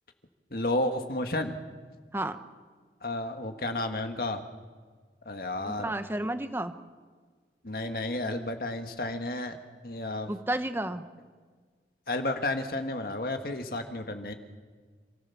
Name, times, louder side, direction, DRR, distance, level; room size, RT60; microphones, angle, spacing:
voice 1, 0.5-1.5 3.0-4.4 5.2-5.8 7.6-9.6 9.8-10.3 12.1-14.3, left 2 dB, 55° left, 6 dB, 1.7 m, -31 dB
voice 2, 5.6-6.7 10.3-11.0, right 1 dB, 15° right, 9 dB, 0.8 m, -31 dB
28.5 x 14.5 x 7.1 m, 1.6 s
head